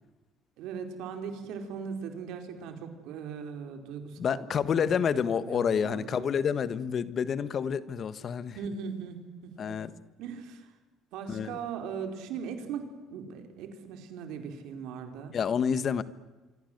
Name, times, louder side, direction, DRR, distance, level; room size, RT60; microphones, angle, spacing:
voice 1, 0.6-4.9 5.3-6.3 8.5-9.8 10.2-10.7 11.1-15.4, right 6 dB, 75° right, 4.6 m, -39 dB
voice 2, 4.2-8.6 9.6-9.9 11.3-11.6 15.3-16.0, left 7 dB, 50° left, 1.4 m, -28 dB
27.5 x 25.0 x 8.1 m
supercardioid pair, 80°, 0 cm